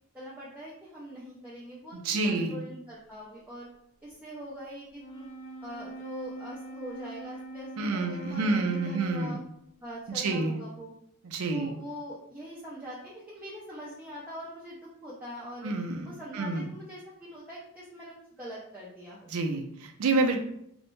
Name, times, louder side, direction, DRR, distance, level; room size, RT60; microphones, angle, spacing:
voice 1, 0.1-3.7 4.0-5.3 5.6-9.4 9.8-10.9 11.5-15.7 16.0-19.3, equal, 10° right, -7 dB, 0.4 m, -43 dB
voice 2, 1.9-2.6 7.8-9.4 10.1-10.6 11.2-11.7 15.6-16.6 19.3-20.4, right 3 dB, 75° right, 4 dB, 0.4 m, -28 dB
Wind instrument woodwind instrument, 4.9-9.7, right 1 dB, 60° left, 0.4 m, -43 dB
2.5 x 2.1 x 3.1 m, 0.73 s
head